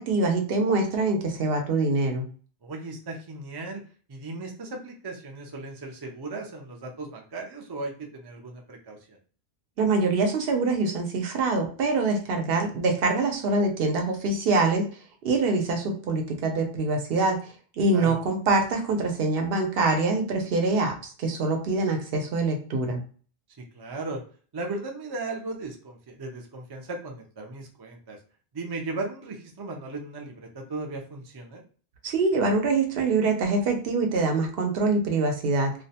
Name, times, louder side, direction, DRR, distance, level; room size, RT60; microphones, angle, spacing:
voice 1, 0.0-2.2 9.8-14.9 15.2-23.0 32.0-35.7, right 3 dB, 70° right, 3 dB, 0.8 m, -24 dB
voice 2, 2.6-3.8 4.1-9.2 17.9-18.2 23.7-24.2 24.5-28.2 28.5-31.6, right 2 dB, 40° right, 1 dB, 0.3 m, -36 dB
2.5 x 2.1 x 2.7 m, 0.41 s
omnidirectional pair, 1.0 m